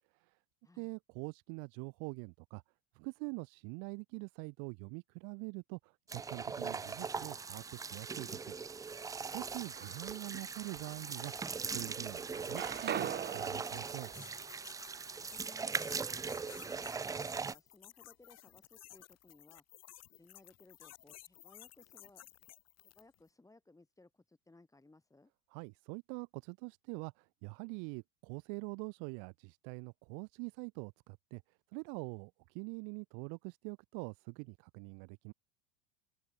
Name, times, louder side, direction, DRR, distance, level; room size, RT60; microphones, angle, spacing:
voice 1, 0.7-2.6 2.9-8.5 9.3-11.3 11.7-14.1 25.5-35.3, right 40 dB or more, 65° right, 2.8 m, -45 dB
sound 1, 6.1-17.6, right 5 dB, 10° right, 0.4 m, -40 dB
sound 2, 9.4-10.3 10.9-11.9 12.1-16.1, right 9 dB, 30° right, 1.3 m, -44 dB
sound 3, 12.3-23.2, left 14 dB, 45° left, 5.1 m, -57 dB
voice 2, 15.3-17.3 17.5-19.6 20.1-22.2 22.8-25.3, left 2 dB, 10° left, 4.4 m, -61 dB
open air
supercardioid pair, 115°, 36 cm